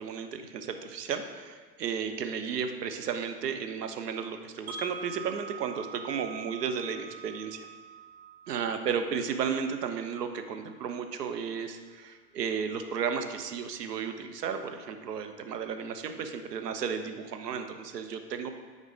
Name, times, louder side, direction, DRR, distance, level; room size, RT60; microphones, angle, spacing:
voice 1, 0.0-7.7 8.5-18.5, right 6 dB, 70° right, 7 dB, 0.7 m, -34 dB
Wind chime, 4.7-10.7, right 5 dB, 50° right, 1.1 m, -45 dB
9.0 x 4.0 x 3.6 m, 1.5 s
figure-of-eight pair, 85°, 49 cm